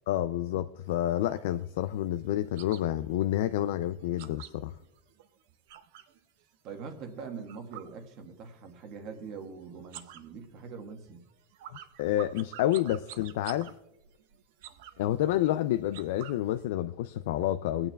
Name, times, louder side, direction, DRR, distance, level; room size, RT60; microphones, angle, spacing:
voice 1, 0.1-4.7 12.0-13.7 15.0-17.9, left 13 dB, 80° left, 0.3 m, -29 dB
sound 1, 0.9-6.2 6.5-8.7 8.9-9.5 9.8-16.6, right 11 dB, 70° right, 0.6 m, -50 dB
voice 2, 6.6-11.2, right 5 dB, 45° right, 1.4 m, -43 dB
23.5 x 8.9 x 2.3 m
supercardioid pair, 165°, 0 cm